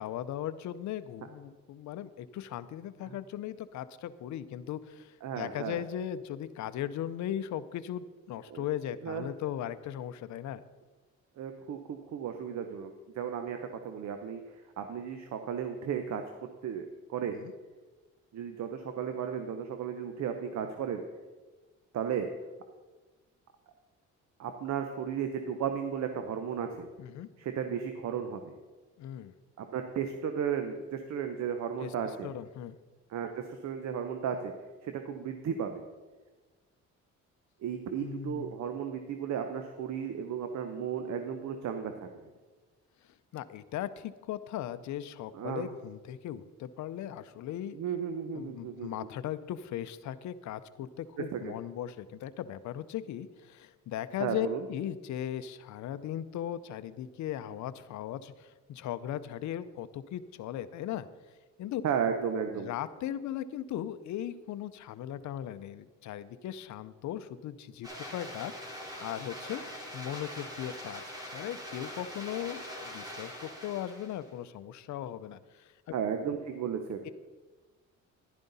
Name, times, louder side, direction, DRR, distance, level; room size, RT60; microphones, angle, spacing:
voice 1, 0.0-10.6 17.3-17.5 27.0-27.3 29.0-29.3 31.8-31.9 32.2-32.8 38.0-38.6 43.3-47.8 48.3-61.1 61.6-61.8 62.6-69.6 69.9-71.0 71.3-75.9 77.0-77.1, left 11 dB, 70° left, 12 dB, 0.6 m, -38 dB
voice 2, 5.2-5.8 8.5-8.6 9.0-9.3 11.4-13.6 13.8-14.4 14.8-16.2 16.6-17.3 18.3-21.0 21.9-22.3 24.4-26.9 27.4-28.5 29.6-32.3 33.1-34.5 34.8-35.8 37.6-42.1 45.3-45.7 47.7-49.1 51.2-51.5 54.2-54.6 61.8-62.7 75.9-77.1, right 7 dB, 65° right, 6 dB, 0.9 m, -34 dB
sound 1, 67.8-74.3, equal, 10° right, 2.9 m, -43 dB
11.5 x 10.5 x 4.1 m, 1.3 s
cardioid pair, 90°, 30 cm